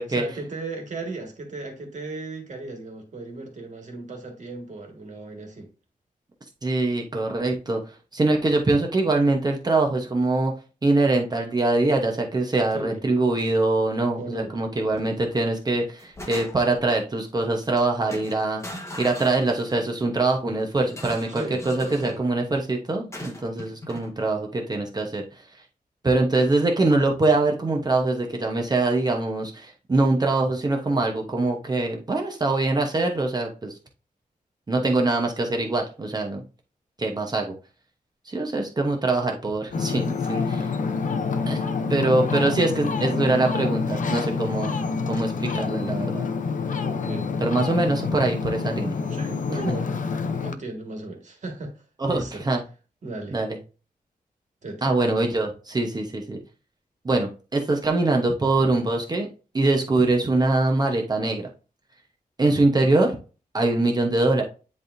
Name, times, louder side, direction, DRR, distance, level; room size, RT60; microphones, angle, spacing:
voice 1, 0.1-5.7 12.7-13.0 14.2-14.5 21.3-22.2 46.8-47.3 49.0-49.9 50.4-52.4 53.0-53.4 54.6-54.9, right 2 dB, 55° right, 1.8 m, -36 dB
voice 2, 6.6-7.8 8.1-10.5 10.8-18.6 19.0-25.2 26.0-33.7 34.7-36.4 37.0-37.5 38.3-40.7 41.5-41.6 41.9-44.7 45.1-46.3 47.4-48.9 49.7-49.8 52.0-52.6 53.3-53.6 54.8-56.4 57.0-59.3 59.5-61.5 62.4-63.2 63.5-64.4, right 2 dB, 25° right, 0.9 m, -23 dB
sound 1, 14.9-15.3 15.7-16.8 17.6-17.8 18.1-19.9 20.9-22.2 23.1-24.1, left 1 dB, 20° left, 1.3 m, -40 dB
Ocean, 39.7-50.5, left 5 dB, 60° left, 0.6 m, -27 dB
10.5 x 3.5 x 2.6 m
wide cardioid pair, 170°, 15 cm